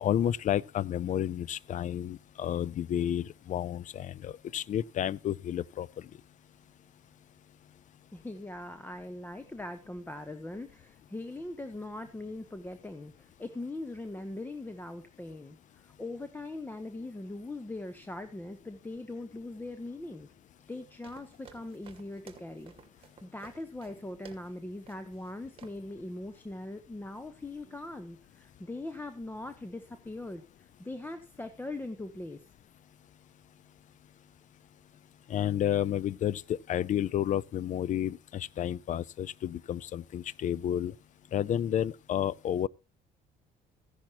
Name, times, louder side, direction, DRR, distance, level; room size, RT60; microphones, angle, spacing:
voice 1, 0.0-5.9 35.3-40.9 41.3-42.7, left 10 dB, 50° left, 0.5 m, -31 dB
voice 2, 8.1-20.3 20.7-32.4, left 2 dB, 10° left, 1.1 m, -41 dB
sound 1, 21.0-24.6 24.9-25.3 25.6-25.9, right 6 dB, 35° right, 2.4 m, -55 dB
15.0 x 10.5 x 2.9 m
cardioid pair, 110°, 17 cm